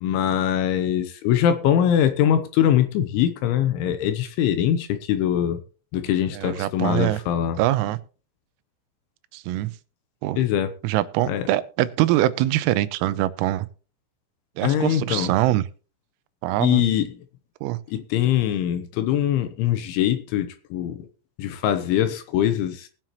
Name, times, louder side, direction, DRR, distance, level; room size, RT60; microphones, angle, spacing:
voice 1, 0.0-5.6 5.9-7.6 10.4-10.7 11.3-11.4 14.6-15.3 16.6-17.1 17.9-21.1 21.4-22.9, left 10 dB, 75° left, 3.0 m, -22 dB
voice 2, 6.3-7.2 7.6-8.0 9.3-9.7 10.2-10.4 10.8-13.7 14.6-15.7 16.4-16.8 17.6-17.8, right 15 dB, 90° right, 3.4 m, -23 dB
20.5 x 7.5 x 3.0 m
omnidirectional pair, 6.0 m